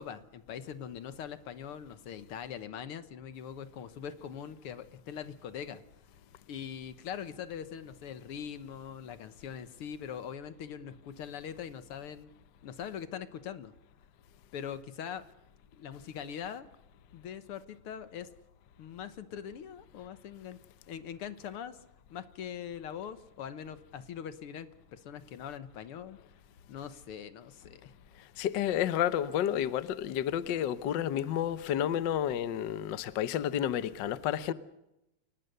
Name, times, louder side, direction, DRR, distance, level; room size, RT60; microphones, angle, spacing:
voice 1, 0.0-5.8 6.5-12.3 12.6-13.7 14.5-15.2 15.7-16.7 17.1-18.3 18.8-20.6 20.9-21.8 22.1-26.2 26.7-27.9, left 8 dB, 60° left, 1.6 m, -42 dB
voice 2, 28.4-34.5, left 10 dB, 85° left, 1.0 m, -30 dB
28.5 x 19.0 x 6.8 m
omnidirectional pair, 3.4 m